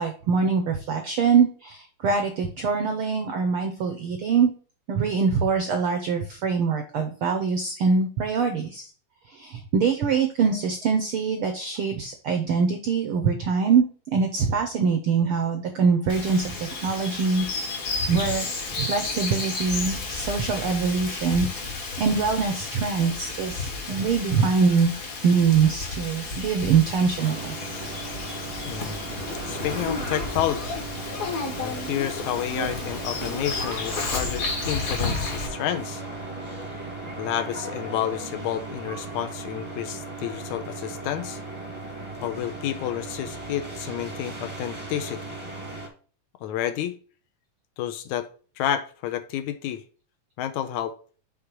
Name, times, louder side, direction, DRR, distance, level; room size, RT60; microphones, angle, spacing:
voice 1, 0.0-4.5 4.9-8.9 9.3-13.8 14.1-17.5 18.1-18.5 18.7-27.5, right 5 dB, 75° right, 1.2 m, -23 dB
Bird vocalization bird call bird song, 16.1-35.5, left 3 dB, 45° left, 1.1 m, -32 dB
sound 1, 27.1-45.9, right 2 dB, 20° right, 0.7 m, -37 dB
voice 2, 28.6-29.0 29.5-30.9 31.6-36.0 37.2-41.4 42.2-45.2 46.4-47.0 47.8-48.3 48.6-49.8 50.4-51.0, left 11 dB, 80° left, 1.9 m, -30 dB
6.5 x 3.6 x 6.0 m
omnidirectional pair, 3.5 m